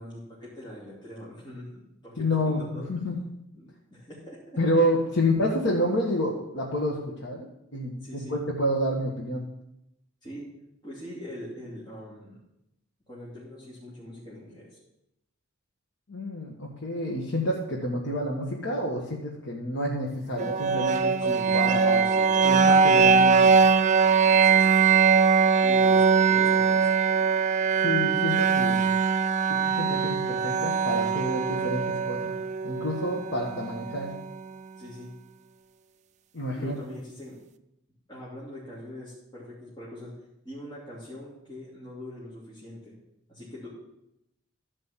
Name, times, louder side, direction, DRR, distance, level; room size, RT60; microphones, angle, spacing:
voice 1, 0.0-2.9 3.5-4.6 8.0-8.4 10.2-10.5 10.8-12.4 13.1-14.8 21.2-23.2 24.2-25.2 25.6-26.9 34.7-35.1 36.5-37.4 38.1-40.2 40.4-42.9 43.3-43.7, left 1 dB, 20° left, -8 dB, 3.0 m, -43 dB
voice 2, 2.2-3.4 4.6-9.5 16.1-22.0 22.4-23.5 27.8-28.8 29.5-32.4 32.6-34.1 36.3-36.7, left 1 dB, 60° left, -2 dB, 1.5 m, -29 dB
sound 1, 20.4-34.3, right 5 dB, 35° right, 0.4 m, -22 dB
12.5 x 5.3 x 7.4 m, 0.84 s
head